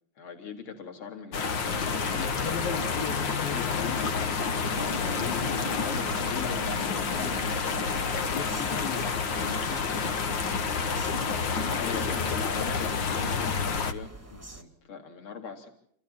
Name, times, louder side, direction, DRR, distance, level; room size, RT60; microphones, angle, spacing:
voice 1, 0.2-2.3 4.8-5.0 10.9-11.2 11.5-14.2 14.5-15.7, left 6 dB, 35° left, 5 dB, 4.1 m, -40 dB
sound 1, 1.3-13.9, left 5 dB, 60° left, 1.2 m, -29 dB
voice 2, 2.1-4.5 4.9-13.0 14.3-14.5, left 7 dB, 75° left, 5 dB, 4.2 m, -39 dB
sound 2, 5.3-14.6, right 2 dB, 5° right, 1.9 m, -47 dB
28.5 x 28.5 x 4.3 m, 0.65 s
omnidirectional pair, 4.1 m